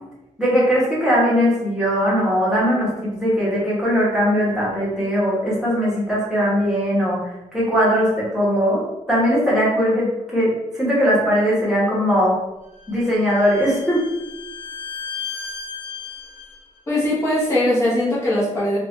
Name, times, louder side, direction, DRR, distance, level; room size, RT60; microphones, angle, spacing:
voice 1, 0.4-12.3 12.9-14.0, equal, 5° right, -8 dB, 1.3 m, -20 dB
Bowed string instrument, 12.8-16.6, left 6 dB, 45° left, 0.8 m, -34 dB
voice 2, 16.9-18.8, left 1 dB, 20° left, -8 dB, 1.1 m, -20 dB
3.7 x 2.4 x 3.2 m, 0.97 s
wide cardioid pair, 175°, 13 cm